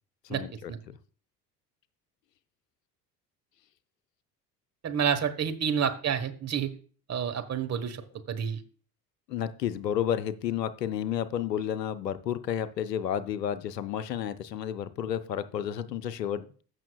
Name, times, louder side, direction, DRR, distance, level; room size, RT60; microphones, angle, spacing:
voice 1, 0.2-0.9 9.3-16.6, left 9 dB, 90° left, 14 dB, 0.7 m, -31 dB
voice 2, 4.8-6.7 7.1-8.0 8.3-8.6, right 7 dB, 35° right, 8 dB, 1.3 m, -29 dB
15.5 x 6.3 x 2.3 m, 0.41 s
hypercardioid pair, 65°, 48 cm